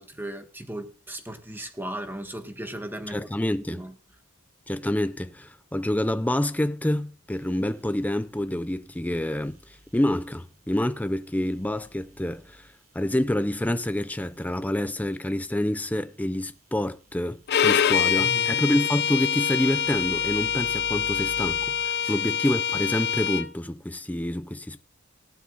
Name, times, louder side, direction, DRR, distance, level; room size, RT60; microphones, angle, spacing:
voice 1, 0.0-3.3 3.6-3.9 18.2-18.6 22.0-22.2, right 1 dB, 10° right, 1.4 m, -37 dB
voice 2, 3.1-3.9 4.7-12.7 12.9-24.8, left 1 dB, 5° left, 0.5 m, -27 dB
sound 1, 7.3-15.6 16.0-22.1, equal, 45° right, 3.1 m, -53 dB
Bowed string instrument, 17.5-23.5, left 8 dB, 50° left, 0.6 m, -25 dB
18.0 x 12.0 x 2.4 m
head